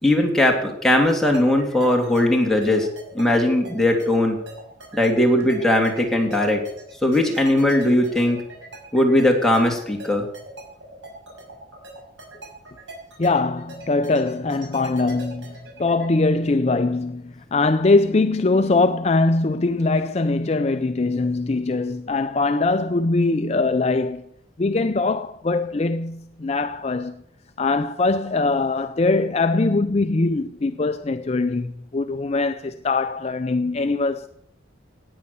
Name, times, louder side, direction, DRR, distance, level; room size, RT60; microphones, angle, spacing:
voice 1, 0.0-2.9 3.1-4.4 4.9-6.6 7.0-8.4 8.9-10.3, left 1 dB, ahead, 2.8 m, -19 dB
sound 1, 1.3-16.1, right 2 dB, 85° right, 5.7 m, -41 dB
voice 2, 13.2-24.2 24.6-27.2 27.6-34.3, left 3 dB, 35° left, 0.5 m, -22 dB
17.5 x 9.6 x 6.9 m
head